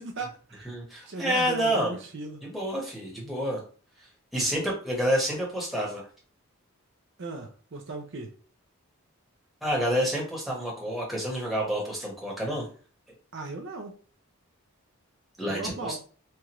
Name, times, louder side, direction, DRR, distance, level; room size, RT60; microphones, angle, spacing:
voice 1, 0.0-0.7 1.1-2.4 7.2-8.3 13.3-13.9 15.5-16.0, right 3 dB, 55° right, 3 dB, 0.5 m, -37 dB
voice 2, 0.6-1.9 2.4-3.6 4.3-6.1 9.6-12.7 15.4-16.0, equal, ahead, -4 dB, 1.1 m, -28 dB
4.4 x 2.4 x 3.0 m, 0.40 s
head